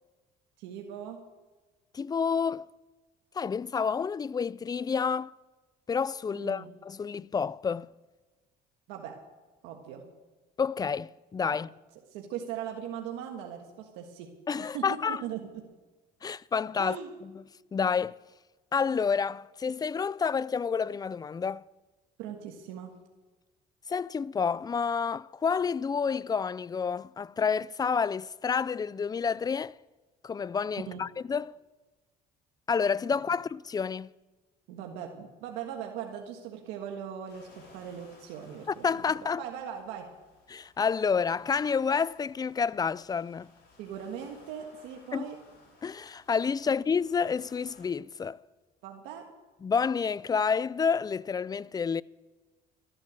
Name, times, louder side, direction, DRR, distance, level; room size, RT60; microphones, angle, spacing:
voice 1, 0.6-1.2 6.3-6.7 8.9-9.2 9.6-10.0 12.1-14.3 14.6-15.6 16.8-17.1 22.2-22.9 30.9-31.0 34.7-39.1 39.4-40.1 43.8-45.4 48.8-49.2, right 8 dB, 90° right, 1.6 m, -39 dB
voice 2, 1.9-2.7 3.3-5.3 5.9-7.9 10.6-11.7 14.5-15.2 16.2-17.0 17.2-17.3 17.7-18.2 18.7-21.7 23.9-29.7 30.2-31.6 32.7-34.1 38.7-39.4 40.5-43.5 45.1-45.3 45.8-48.4 49.6-52.0, left 6 dB, 20° left, 0.4 m, -29 dB
sound 1, 37.3-47.9, left 3 dB, 65° left, 5.9 m, -59 dB
13.5 x 12.0 x 6.3 m
cardioid pair, 90°, 18 cm